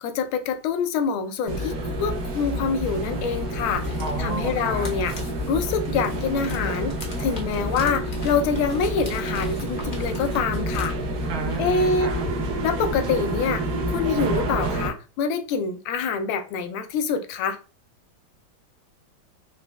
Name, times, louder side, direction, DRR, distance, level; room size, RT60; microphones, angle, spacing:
voice 1, 0.0-3.9 4.2-5.1 5.5-6.9 7.2-11.0 11.6-12.1 12.6-17.6, left 5 dB, 85° left, 1.4 m, -26 dB
sound 1, 1.5-14.9, right 1 dB, 60° right, 1.0 m, -28 dB
sound 2, 3.6-10.9, left 2 dB, 55° left, 0.5 m, -41 dB
voice 2, 4.0-4.9 11.3-12.3, right 3 dB, 80° right, 1.7 m, -32 dB
4.1 x 2.9 x 2.2 m
omnidirectional pair, 2.2 m